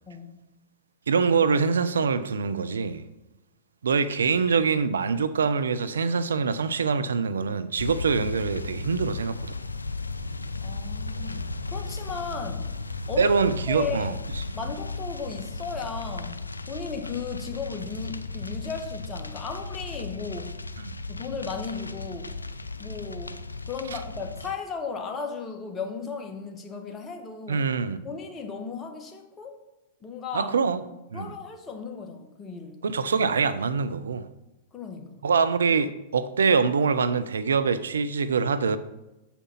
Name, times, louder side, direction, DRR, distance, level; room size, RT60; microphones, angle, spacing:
voice 1, 0.1-0.4 10.6-12.8 13.1-13.4 13.7-14.1 14.5-20.6 21.1-22.4 22.8-27.7 28.0-29.6 30.0-30.5 31.1-32.8 34.7-35.2, left 5 dB, 20° left, 1.5 m, -36 dB
voice 2, 1.1-3.0 3.8-9.6 13.2-14.1 20.8-20.9 27.5-28.0 30.3-30.8 31.1-31.3 32.8-34.3 35.2-38.8, right 5 dB, 75° right, 0.5 m, -24 dB
sound 1, 7.8-24.5, left 3 dB, 85° left, 0.5 m, -35 dB
8.2 x 5.8 x 5.6 m
figure-of-eight pair, 100°, 0 cm